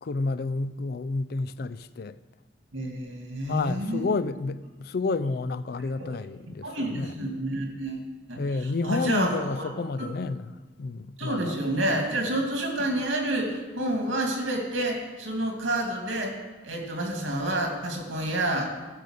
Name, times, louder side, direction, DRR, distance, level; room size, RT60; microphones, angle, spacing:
voice 1, 0.0-2.2 3.5-7.1 8.4-10.5 10.8-11.5, left 3 dB, 50° left, 0.4 m, -30 dB
voice 2, 2.7-4.1 6.0-6.1 6.6-9.7 10.0-10.1 11.2-16.3 16.6-18.7, right 1 dB, 85° right, 2.6 m, -29 dB
14.0 x 6.8 x 6.6 m
head